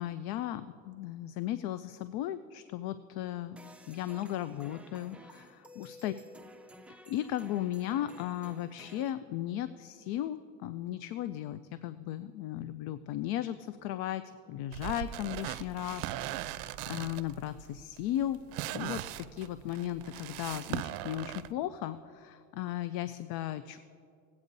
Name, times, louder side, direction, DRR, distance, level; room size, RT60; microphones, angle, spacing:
voice 1, 0.0-3.6 3.9-6.1 7.1-14.2 14.5-18.4 18.7-23.8, left 12 dB, 80° left, 13 dB, 0.5 m, -36 dB
sound 1, 3.6-9.1, equal, 5° right, 0.4 m, -53 dB
sound 2, 14.7-21.5, right 13 dB, 85° right, 0.5 m, -39 dB
20.0 x 8.5 x 2.6 m, 2.3 s
cardioid pair, 105°, 36 cm